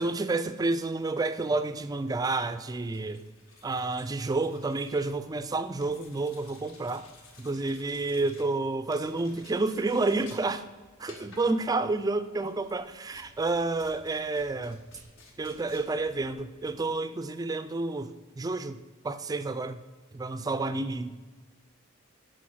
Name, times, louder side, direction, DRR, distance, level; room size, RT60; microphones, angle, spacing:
voice 1, 0.0-3.2 3.6-7.1 7.4-10.7 11.0-14.8 15.4-18.8 19.0-19.8 20.1-21.1, right 3 dB, 20° right, 11 dB, 0.3 m, -30 dB
sound 1, 1.2-17.1, left 2 dB, 70° left, 1.4 m, -56 dB
8.4 x 4.7 x 6.3 m, 1.3 s
head